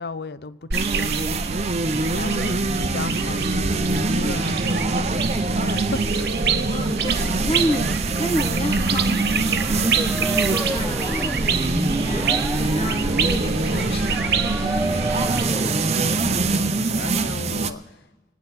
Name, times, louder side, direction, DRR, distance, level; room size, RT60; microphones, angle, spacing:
voice 1, 0.0-6.4 15.1-18.1, left 3 dB, 60° left, 0.5 m, -36 dB
sound 1, 0.7-17.7, right 3 dB, 35° right, 0.6 m, -24 dB
sound 2, 0.7-15.4, right 5 dB, 65° right, 0.8 m, -27 dB
voice 2, 2.2-2.7 6.5-11.5 11.8-14.8, equal, 30° left, 1.1 m, -30 dB
sound 3, 9.4-16.8, right 1 dB, 5° right, 0.8 m, -31 dB
27.0 x 9.8 x 4.2 m
head